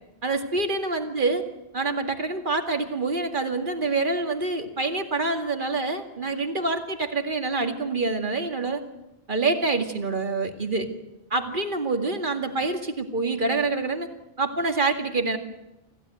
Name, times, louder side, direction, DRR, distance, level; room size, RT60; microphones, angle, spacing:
voice 1, 0.2-1.4 1.7-8.8 9.3-10.9 11.3-14.1 14.4-15.4, right 3 dB, 50° right, 6 dB, 2.3 m, -26 dB
26.5 x 15.5 x 9.2 m, 0.95 s
omnidirectional pair, 1.1 m